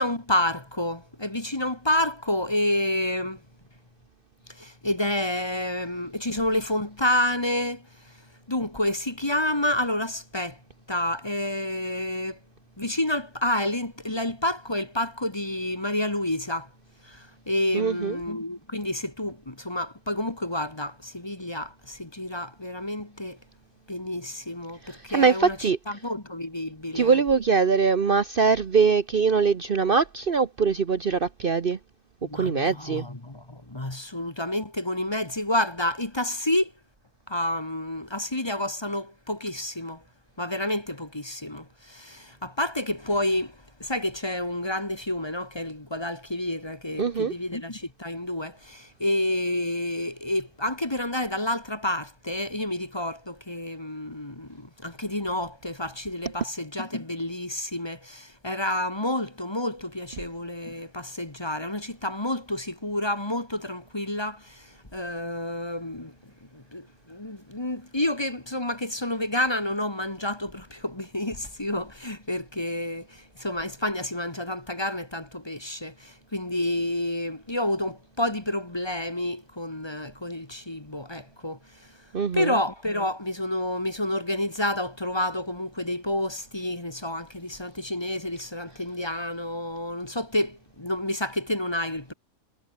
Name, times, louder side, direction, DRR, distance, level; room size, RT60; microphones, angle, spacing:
voice 1, 0.0-3.4 4.5-8.2 8.5-10.6 10.9-12.4 12.8-16.7 17.0-23.4 23.9-27.2 32.2-36.7 37.3-40.0 40.4-82.1 82.3-92.1, left 1 dB, 20° left, 1.8 m, -29 dB
voice 2, 17.7-18.1 25.1-25.8 26.9-31.8 32.3-33.1 47.0-47.3 82.1-82.5, right 5 dB, 45° right, 1.1 m, -22 dB
omnidirectional pair, 1.4 m